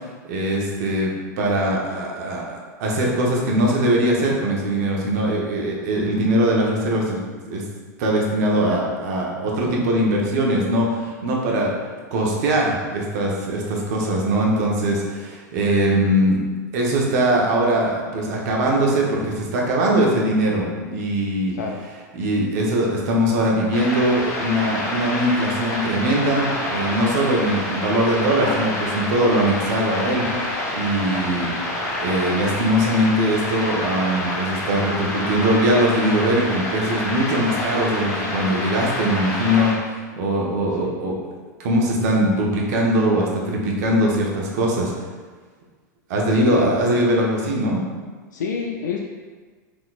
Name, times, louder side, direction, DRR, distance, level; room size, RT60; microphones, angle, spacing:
voice 1, 0.2-1.1 1.4-7.2 7.5-7.6 8.0-11.7 12.1-16.4 16.7-21.5 22.1-31.5 32.0-41.2 41.6-44.9 46.1-47.8, right 1 dB, 65° right, -2 dB, 0.8 m, -21 dB
sound 1, 23.7-39.7, left 1 dB, 45° left, 1.5 m, -27 dB
voice 2, 46.3-47.0 48.3-49.0, left 5 dB, 85° left, 0 dB, 0.4 m, -30 dB
4.0 x 2.9 x 2.4 m, 1.5 s
hypercardioid pair, 110°, 10 cm